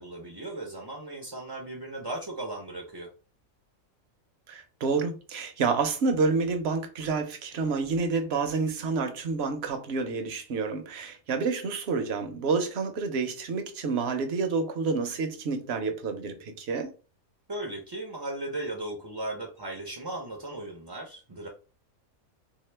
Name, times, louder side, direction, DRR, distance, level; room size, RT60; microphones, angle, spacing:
voice 1, 0.0-3.1 17.5-21.5, right 1 dB, 40° right, 0.3 m, -37 dB
voice 2, 4.5-16.9, right 4 dB, 60° right, 0.7 m, -29 dB
3.4 x 2.8 x 3.2 m
omnidirectional pair, 1.5 m